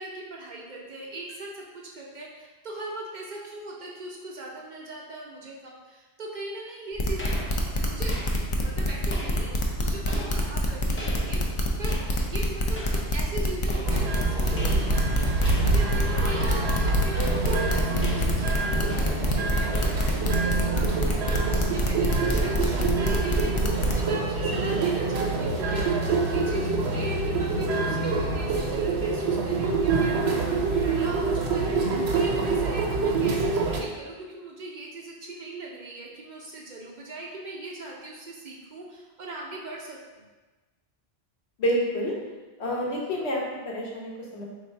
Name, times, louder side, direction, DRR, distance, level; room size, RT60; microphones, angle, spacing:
voice 1, 0.0-7.4 7.7-8.2 8.5-11.4 11.8-40.3, right 2 dB, 55° right, -2 dB, 0.6 m, -40 dB
sound 1, 7.0-23.9, left 1 dB, 50° left, 0.3 m, -26 dB
sound 2, 7.2-23.5, equal, 15° left, 0.6 m, -43 dB
sound 3, 13.8-33.8, right 3 dB, 85° right, 0.9 m, -26 dB
voice 2, 41.6-42.2 42.6-44.4, equal, 85° left, -2 dB, 1.1 m, -28 dB
3.4 x 2.6 x 4.3 m, 1.2 s
omnidirectional pair, 1.1 m